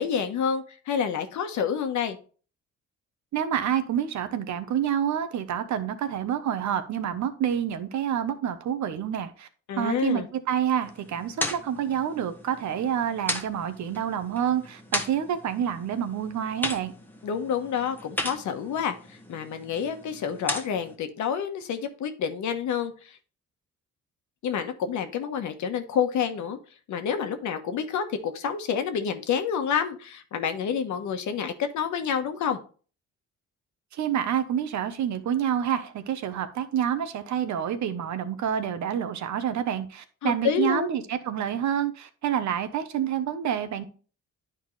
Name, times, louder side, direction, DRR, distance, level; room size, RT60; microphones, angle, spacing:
voice 1, 0.0-2.2 9.7-10.3 17.2-23.2 24.4-26.6 26.9-32.6 40.2-41.0, left 7 dB, 75° left, 7 dB, 1.2 m, -28 dB
voice 2, 3.3-9.5 9.7-16.9 33.9-43.8, right 9 dB, 70° right, 10 dB, 1.0 m, -28 dB
sound 1, 10.8-21.0, left 1 dB, 5° left, 1.2 m, -36 dB
10.0 x 4.6 x 3.2 m, 0.38 s
cardioid pair, 90°, 30 cm